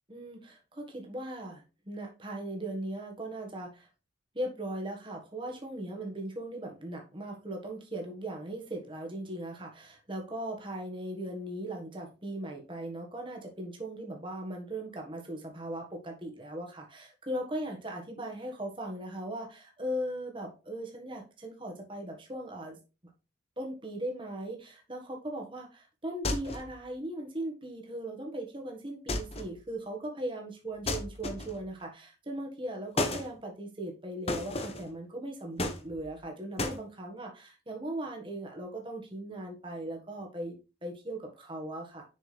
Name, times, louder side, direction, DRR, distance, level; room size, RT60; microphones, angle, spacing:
voice 1, 0.1-3.9 4.3-22.8 23.6-42.0, right 1 dB, 25° right, 1 dB, 1.5 m, -38 dB
sound 1, 26.2-26.8 29.1-29.6 30.9-31.7 33.0-33.3 34.3-34.9 35.6-36.2 36.6-36.8, left 2 dB, 30° left, 0.9 m, -33 dB
6.8 x 6.1 x 3.3 m, 0.31 s
head